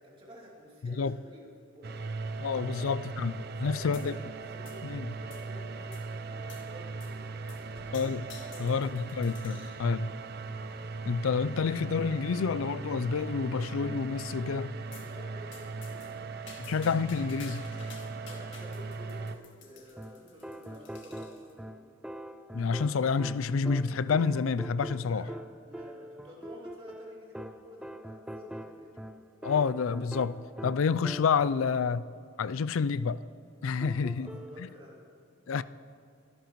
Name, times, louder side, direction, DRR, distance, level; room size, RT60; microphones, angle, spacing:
voice 1, 0.0-2.0 2.6-4.2 4.5-7.9 8.4-9.0 9.5-10.0 15.0-16.3 18.3-22.0 25.0-25.3 25.6-29.1 34.1-35.1, equal, 25° right, 2.8 m, -50 dB
voice 2, 0.8-1.1 2.4-4.1 4.8-5.1 7.9-8.3 8.6-10.1 11.1-14.7 16.6-17.6 22.5-25.2 29.4-32.1 32.4-33.2 33.6-34.3 35.5-35.6, left 5 dB, 85° left, 0.4 m, -29 dB
sound 1, 1.8-19.4, right 3 dB, 50° right, 0.6 m, -39 dB
sound 2, 3.9-4.4 4.6-5.5 5.9-6.1 6.5-6.7 7.0-7.2 7.5-9.8 10.4-10.8 11.4-11.5 11.8-11.9 12.3-12.4 12.8-13.3 14.9-15.1 15.5-21.5, left 5 dB, 65° left, 1.9 m, -53 dB
sound 3, 20.0-31.6 33.8-34.6, equal, 5° right, 0.3 m, -43 dB
24.0 x 12.0 x 3.1 m
head